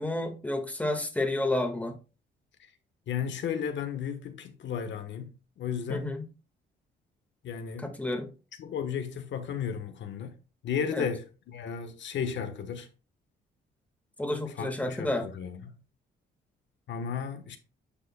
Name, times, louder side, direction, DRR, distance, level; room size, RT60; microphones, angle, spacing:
voice 1, 0.0-2.0 5.9-6.3 7.8-8.3 10.9-11.1 14.2-15.3, left 1 dB, 5° left, 1.7 m, -30 dB
voice 2, 3.1-6.1 7.4-7.9 8.6-10.4 10.6-12.9 14.5-15.6 16.9-17.6, left 7 dB, 65° left, 1.2 m, -34 dB
9.9 x 5.5 x 2.3 m
cardioid pair, 90°, 20 cm